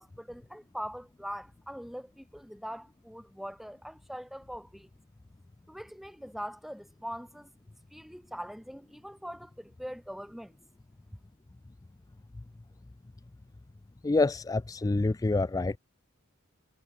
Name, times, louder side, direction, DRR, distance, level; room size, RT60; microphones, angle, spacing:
voice 1, 0.0-4.9 5.7-7.5 7.9-10.5, equal, ahead, 7.2 m, -42 dB
voice 2, 14.0-15.8, left 3 dB, 15° left, 0.3 m, -27 dB
head